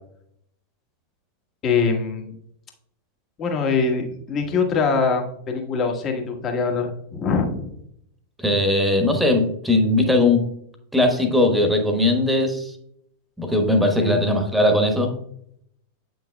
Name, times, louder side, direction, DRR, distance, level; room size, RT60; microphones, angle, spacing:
voice 1, 1.6-2.3 3.4-7.8 14.0-14.2, left 5 dB, 30° left, 3 dB, 1.5 m, -23 dB
voice 2, 8.4-10.4 10.9-12.8 13.4-15.1, left 1 dB, 5° right, 4 dB, 1.3 m, -19 dB
8.8 x 6.3 x 2.2 m, 0.72 s
figure-of-eight pair, 90°, 0 cm